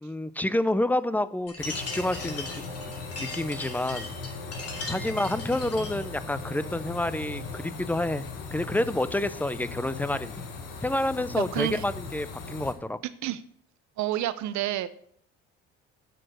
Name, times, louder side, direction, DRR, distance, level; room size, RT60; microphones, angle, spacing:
voice 1, 0.0-2.5 3.2-4.1 4.8-10.5 10.8-13.0, left 1 dB, 5° left, 15 dB, 0.5 m, -29 dB
sound 1, 1.5-6.0, left 3 dB, 50° left, 2.4 m, -39 dB
sound 2, 1.6-12.7, left 5 dB, 80° left, 1.6 m, -39 dB
sound 3, 1.7-10.2, right 4 dB, 25° right, 0.8 m, -47 dB
voice 2, 11.3-11.8 13.2-13.4 14.0-14.9, right 13 dB, 65° right, 14 dB, 0.8 m, -29 dB
7.5 x 6.4 x 6.4 m, 0.65 s
supercardioid pair, 65°, 32 cm